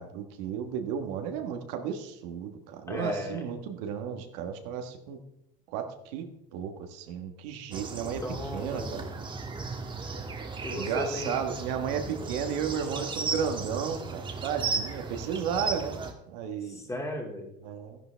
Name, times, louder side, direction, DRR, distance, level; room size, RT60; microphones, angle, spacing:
voice 1, 0.0-5.2 5.7-8.2 8.5-9.0 10.7-16.8 17.6-18.0, right 7 dB, 80° right, 5 dB, 1.5 m, -33 dB
voice 2, 2.9-3.5 8.2-9.0 10.6-11.3 16.6-17.5, left 1 dB, 15° left, 2 dB, 2.2 m, -35 dB
sound 1, 7.7-16.1, right 4 dB, 25° right, 1.4 m, -35 dB
12.5 x 11.0 x 3.4 m, 0.81 s
supercardioid pair, 120°, 21 cm